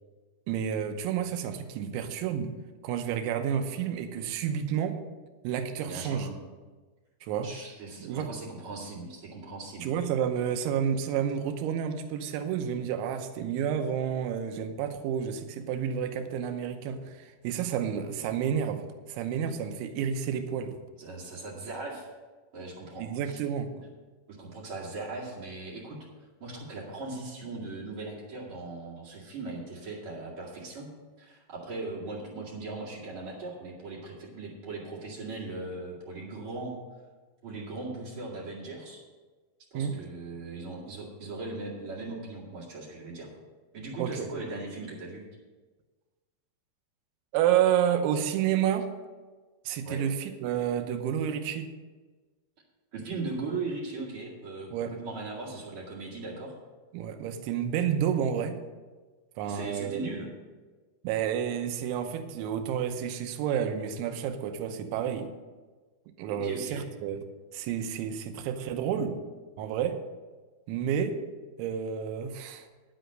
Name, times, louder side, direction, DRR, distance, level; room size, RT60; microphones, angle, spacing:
voice 1, 0.5-2.5 2.8-5.0 5.4-6.3 7.2-7.5 8.0-8.3 9.8-18.8 19.1-20.8 23.0-23.7 39.7-40.0 44.0-44.3 47.3-48.9 49.7-51.7 54.7-54.9 56.9-58.6 59.4-60.0 61.0-65.3 66.2-67.2 67.5-69.2 69.6-70.0 70.7-71.2 71.6-72.7, right 8 dB, 80° right, 7 dB, 3.0 m, -30 dB
voice 2, 5.8-6.4 7.4-9.9 21.0-22.1 22.5-23.4 24.3-26.0 26.4-30.9 31.2-36.7 37.4-39.0 39.7-43.3 43.7-45.2 49.8-50.0 52.9-56.5 59.4-60.3 66.3-66.9, right 3 dB, 55° right, -5 dB, 1.5 m, -39 dB
10.0 x 8.1 x 6.4 m, 1.3 s
omnidirectional pair, 5.9 m